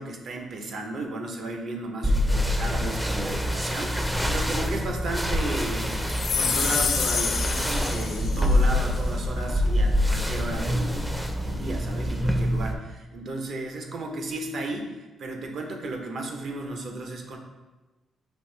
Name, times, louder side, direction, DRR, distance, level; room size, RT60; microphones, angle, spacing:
voice 1, 0.0-6.0 6.3-17.4, right 2 dB, 65° right, 3 dB, 0.7 m, -34 dB
sound 1, 2.0-12.7, left 1 dB, 5° right, 0.5 m, -26 dB
sound 2, 6.1-8.6, left 6 dB, 65° left, 0.3 m, -28 dB
5.4 x 2.6 x 3.1 m, 1.1 s
supercardioid pair, 65°, 0 cm